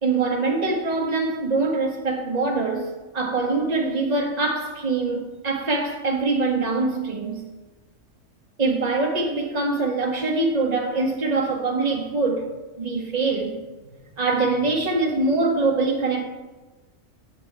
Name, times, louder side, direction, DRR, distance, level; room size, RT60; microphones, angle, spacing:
voice 1, 0.0-7.4 8.6-12.5 12.8-13.6 14.2-16.2, right 3 dB, 35° right, 1.0 m, -23 dB
9.8 x 6.8 x 3.2 m
omnidirectional pair, 1.3 m